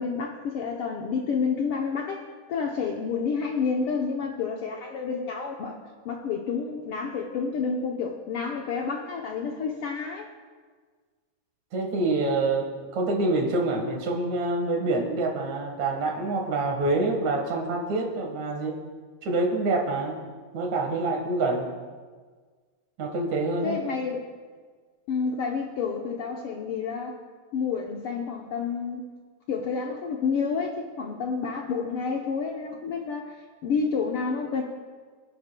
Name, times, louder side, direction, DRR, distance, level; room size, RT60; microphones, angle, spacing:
voice 1, 0.0-5.8 6.0-10.3 23.6-24.2 25.1-27.1 27.5-29.0 29.5-34.6, left 5 dB, 70° left, 0 dB, 1.4 m, -29 dB
voice 2, 11.7-18.8 19.2-20.2 20.5-21.7 23.0-23.8, right 2 dB, 70° right, 2 dB, 2.8 m, -26 dB
24.0 x 10.0 x 2.2 m, 1.5 s
omnidirectional pair, 3.3 m